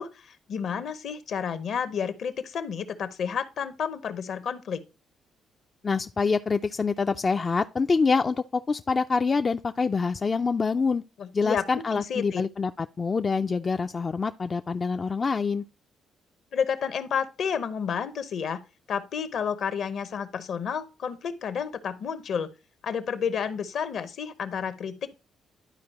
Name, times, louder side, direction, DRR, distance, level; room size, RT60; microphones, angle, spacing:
voice 1, 0.0-4.8 11.2-12.4 16.5-18.6 18.9-22.5 22.8-25.1, left 7 dB, 65° left, 0.8 m, -31 dB
voice 2, 5.8-11.0 11.3-15.6, left 4 dB, 35° left, 0.3 m, -26 dB
11.5 x 4.6 x 2.9 m
cardioid pair, 90°, 0 cm